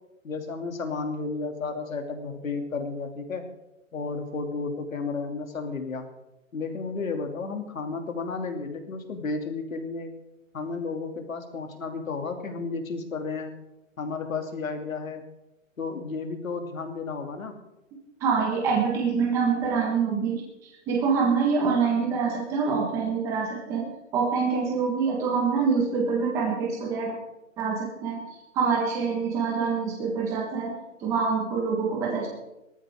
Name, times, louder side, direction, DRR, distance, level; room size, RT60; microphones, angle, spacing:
voice 1, 0.2-3.4 3.9-6.1 6.5-10.1 10.5-13.5 14.0-15.2 15.8-17.6, left 4 dB, 75° left, 5 dB, 2.8 m, -32 dB
voice 2, 18.2-23.8 24.1-27.1 27.6-28.2 28.5-30.7 31.0-32.3, right 5 dB, 5° right, -1 dB, 1.4 m, -25 dB
19.0 x 14.0 x 3.7 m, 0.93 s
hypercardioid pair, 175°, 40 cm